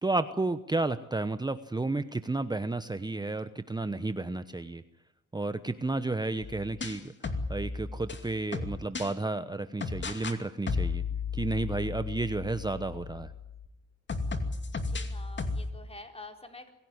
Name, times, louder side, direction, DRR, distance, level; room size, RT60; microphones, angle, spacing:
voice 1, 0.0-4.8 5.3-11.0 11.3-13.3, right 2 dB, 15° right, 11 dB, 1.0 m, -32 dB
sound 1, 6.4-9.1 9.8-10.4 10.7-13.7 14.1-15.7, left 4 dB, 35° left, 2.6 m, -34 dB
voice 2, 14.7-16.7, left 3 dB, 20° left, 5 dB, 4.2 m, -48 dB
24.5 x 16.5 x 9.8 m, 0.82 s
cardioid pair, 90°, 30 cm